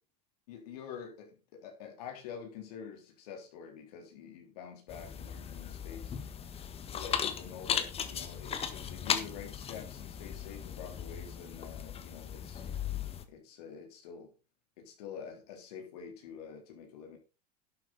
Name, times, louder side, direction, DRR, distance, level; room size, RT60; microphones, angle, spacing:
voice 1, 0.5-6.3 6.9-12.7 13.3-14.3 14.8-17.2, left 7 dB, 75° left, 3.7 m, -47 dB
sound 1, 4.9-13.2, left 8 dB, 30° left, 1.4 m, -37 dB
11.5 x 8.1 x 4.1 m
supercardioid pair, 110°, 20 cm